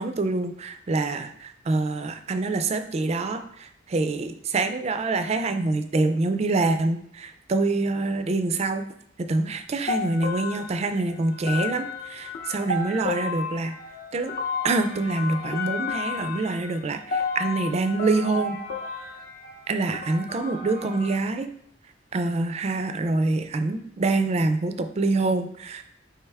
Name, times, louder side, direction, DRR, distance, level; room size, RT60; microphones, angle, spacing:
voice 1, 0.0-8.8 9.3-13.7 14.1-14.3 14.6-18.6 19.7-21.5 22.1-25.8, right 3 dB, 35° right, 8 dB, 0.4 m, -26 dB
sound 1, 9.9-21.2, left 4 dB, 50° left, 0.6 m, -32 dB
4.7 x 3.4 x 3.3 m, 0.71 s
head